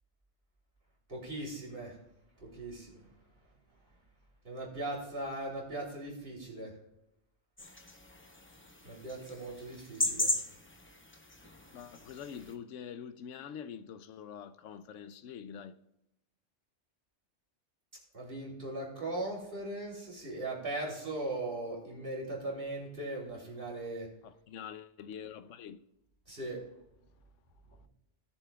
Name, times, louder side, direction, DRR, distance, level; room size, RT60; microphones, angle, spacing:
voice 1, 1.1-2.0 2.4-3.0 4.4-6.7 8.8-10.3 18.1-24.1 26.3-26.6, right 2 dB, 45° right, 3.3 m, -39 dB
sound 1, 7.6-12.5, left 1 dB, 10° left, 0.7 m, -37 dB
voice 2, 11.7-15.8 24.2-25.8, left 8 dB, 85° left, 0.9 m, -45 dB
17.5 x 7.0 x 2.3 m
omnidirectional pair, 1.2 m